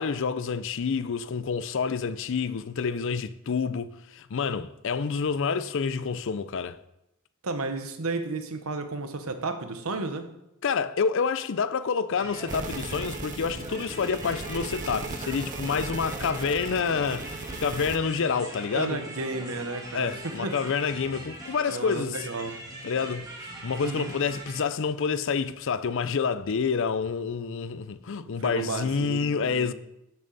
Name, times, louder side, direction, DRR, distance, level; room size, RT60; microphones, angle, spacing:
voice 1, 0.0-6.8 10.6-19.0 19.9-22.3 22.8-29.7, left 5 dB, 60° left, 0.5 m, -28 dB
voice 2, 7.4-10.3 18.7-20.6 21.7-22.6 23.8-24.1 28.4-29.7, right 3 dB, 80° right, 1.1 m, -33 dB
sound 1, 12.2-24.6, right 1 dB, 15° right, 1.8 m, -41 dB
sound 2, 12.5-18.0, right 3 dB, 35° right, 0.6 m, -37 dB
12.0 x 7.0 x 4.0 m
head